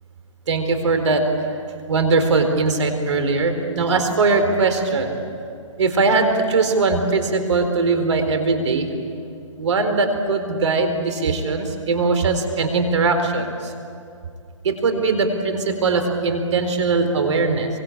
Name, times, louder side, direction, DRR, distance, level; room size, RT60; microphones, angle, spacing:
voice 1, 0.5-1.2 1.9-5.1 5.8-8.9 9.6-13.4 14.6-17.7, right 3 dB, 60° right, 7 dB, 4.2 m, -20 dB
26.5 x 24.5 x 8.8 m, 2.5 s
figure-of-eight pair, 135°, 17 cm